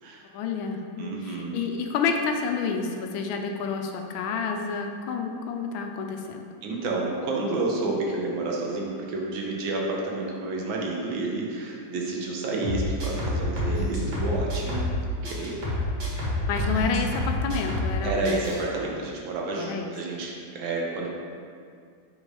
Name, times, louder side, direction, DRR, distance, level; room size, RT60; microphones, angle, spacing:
voice 1, 0.3-6.4 16.5-18.4 19.5-19.8, left 5 dB, 80° left, 4 dB, 1.3 m, -29 dB
voice 2, 1.0-1.6 6.6-14.8 15.2-15.6 18.0-21.1, right 3 dB, 75° right, -1 dB, 1.6 m, -30 dB
sound 1, 12.6-15.0 15.2-18.0 18.2-18.6, left 1 dB, 60° right, 2.1 m, -28 dB
5.3 x 3.7 x 4.7 m, 2.2 s
omnidirectional pair, 2.2 m